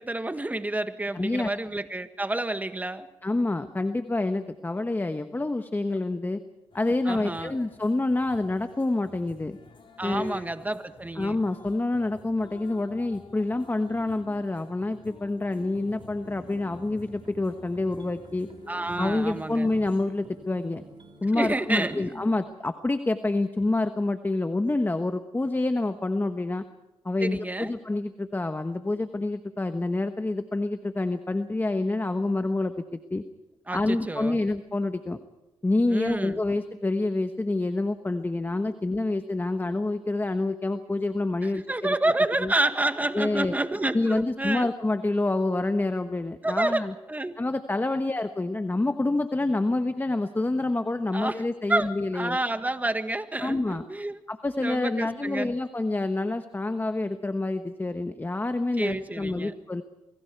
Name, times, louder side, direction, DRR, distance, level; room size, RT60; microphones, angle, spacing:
voice 1, 0.0-3.1 7.0-7.6 10.0-11.3 18.7-19.7 21.3-22.2 27.2-27.7 33.7-34.4 35.9-36.4 41.4-44.7 46.4-47.4 51.1-51.4 51.7-54.2 54.6-55.5 58.8-59.5, right 2 dB, 15° right, 9 dB, 1.7 m, -29 dB
voice 2, 1.1-1.5 3.2-6.4 6.7-9.6 10.0-10.4 11.2-18.5 19.0-20.8 21.2-26.6 27.0-33.2 33.7-35.2 35.6-42.0 42.4-42.5 43.1-43.6 43.9-46.9 47.4-52.4 53.4-53.8 54.3-59.8, left 2 dB, 20° left, 9 dB, 1.2 m, -27 dB
sound 1, 6.7-20.0, left 4 dB, 55° left, 4.3 m, -51 dB
sound 2, 15.6-22.4, right 2 dB, 45° right, 4.4 m, -50 dB
28.5 x 23.5 x 4.7 m, 0.98 s
cardioid pair, 70°, 11 cm